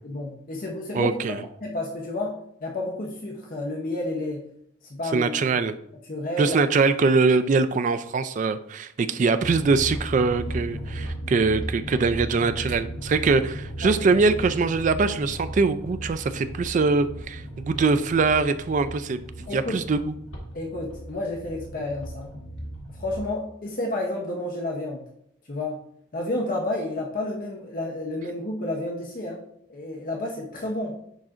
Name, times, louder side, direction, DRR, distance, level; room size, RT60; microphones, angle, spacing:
voice 1, 0.0-1.1 1.6-4.5 4.9-5.3 6.1-6.6 13.8-14.0 19.5-19.8 20.5-22.3 22.9-25.0 25.5-25.8 26.1-29.4 29.7-31.0, left 1 dB, 45° left, 0 dB, 0.7 m, -30 dB
voice 2, 0.9-1.4 5.1-5.7 6.4-20.2, right 4 dB, 40° right, 11 dB, 0.3 m, -23 dB
sound 1, 9.4-23.3, right 1 dB, 75° left, 1.5 m, -36 dB
10.0 x 3.8 x 2.5 m, 0.72 s
head